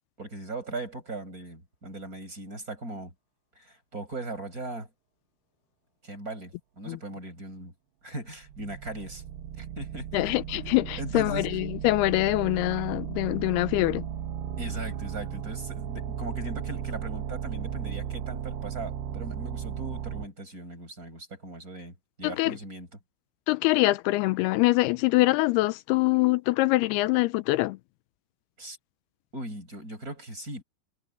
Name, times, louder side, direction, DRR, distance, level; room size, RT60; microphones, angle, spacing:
voice 1, 0.2-3.1 3.6-4.9 6.0-7.7 8.0-9.2 9.6-10.2 10.5-10.6 11.0-11.5 14.6-22.9 28.6-28.8 29.3-30.6, right 2 dB, 20° right, 7.1 m, -39 dB
sound 1, 8.4-20.3, right 9 dB, 90° right, 3.6 m, -35 dB
voice 2, 10.1-14.0 22.2-22.6 23.5-27.8, left 20 dB, 85° left, 2.6 m, -24 dB
omnidirectional pair, 4.5 m